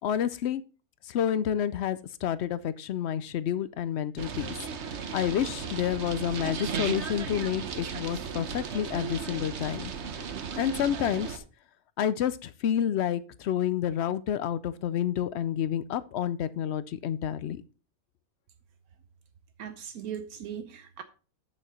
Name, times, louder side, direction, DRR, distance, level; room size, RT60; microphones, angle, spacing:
voice 1, 0.0-0.6 1.0-4.6 5.1-9.9 10.6-11.4 12.0-17.6, left 10 dB, 65° left, 0.6 m, -29 dB
sound 1, 4.2-11.4, right 6 dB, 55° right, 1.1 m, -35 dB
voice 2, 19.6-21.0, right 8 dB, 80° right, 1.2 m, -39 dB
8.3 x 6.5 x 4.3 m
omnidirectional pair, 1.6 m